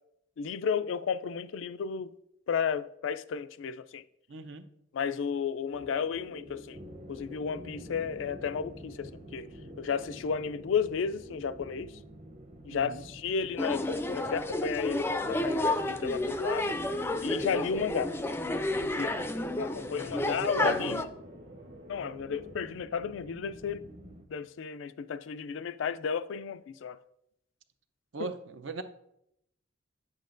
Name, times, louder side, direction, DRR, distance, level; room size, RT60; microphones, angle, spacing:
voice 1, 0.4-2.1 2.5-4.0 4.9-6.8 7.1-9.5 9.8-11.9 12.6-16.8 17.2-18.1 18.8-19.1 19.6-21.1 21.9-23.8 24.3-27.0 28.2-28.3, left 6 dB, 85° left, 0.3 m, -33 dB
voice 2, 4.3-4.7 12.7-13.1 20.1-21.0 28.1-28.8, right 4 dB, 80° right, 0.6 m, -39 dB
sound 1, 5.7-11.7 13.7-22.6, equal, 65° right, 1.2 m, -49 dB
sound 2, 6.7-24.2, right 1 dB, 35° right, 0.8 m, -50 dB
sound 3, 13.6-21.0, left 1 dB, 15° left, 0.3 m, -31 dB
9.4 x 7.4 x 2.6 m
head